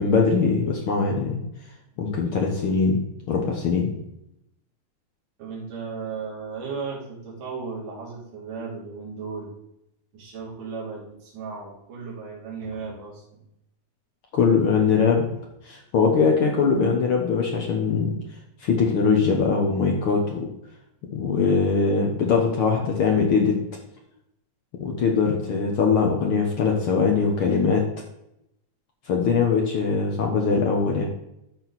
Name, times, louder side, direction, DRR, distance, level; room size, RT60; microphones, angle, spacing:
voice 1, 0.0-1.4 2.0-3.9 14.3-15.3 15.6-18.1 18.6-20.5 21.1-23.6 24.8-27.8 29.1-31.1, left 5 dB, 85° left, 0 dB, 1.1 m, -21 dB
voice 2, 5.4-9.5 10.1-13.4, right 5 dB, 50° right, -6 dB, 4.0 m, -35 dB
13.0 x 4.5 x 4.1 m, 0.81 s
omnidirectional pair, 4.2 m